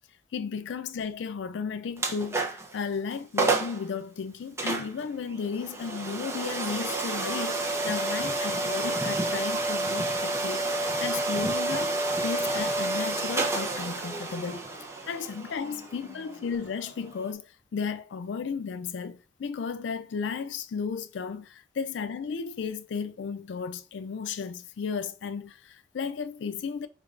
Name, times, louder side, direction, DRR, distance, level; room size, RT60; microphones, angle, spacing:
voice 1, 0.3-14.6 15.1-26.9, left 6 dB, 90° left, 0.4 m, -34 dB
sound 1, 2.0-2.7 3.1-3.2 3.4-3.8 4.6-17.3, right 2 dB, 15° right, 0.6 m, -30 dB
5.0 x 3.3 x 2.4 m
head